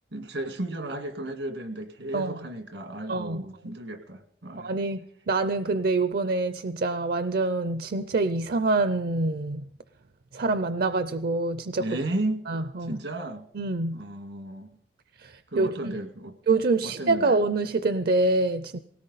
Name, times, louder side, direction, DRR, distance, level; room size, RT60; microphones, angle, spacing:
voice 1, 0.1-4.7 11.8-12.5 12.8-13.4 13.9-14.7 15.5-16.4 16.8-17.4, right 1 dB, 90° right, 7 dB, 1.9 m, -34 dB
voice 2, 3.1-3.5 4.6-5.0 5.3-9.6 10.3-11.9 12.5-13.0 13.6-14.0 15.2-15.9 16.5-18.8, right 3 dB, 60° right, 12 dB, 0.5 m, -26 dB
18.5 x 17.0 x 4.1 m, 0.67 s
head